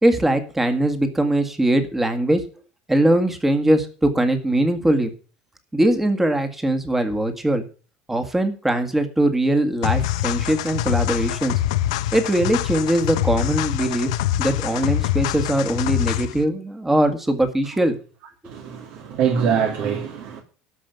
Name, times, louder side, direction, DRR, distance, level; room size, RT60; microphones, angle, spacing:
voice 1, 0.0-2.4 2.9-5.1 5.7-7.6 8.1-11.6 12.1-14.1 14.4-18.0, right 1 dB, 10° right, 1.9 m, -21 dB
sound 1, 9.8-16.4, left 13 dB, 90° left, 0.9 m, -24 dB
voice 2, 18.4-20.4, right 7 dB, 60° right, 2.7 m, -23 dB
13.0 x 5.7 x 9.3 m
supercardioid pair, 135°, 3 cm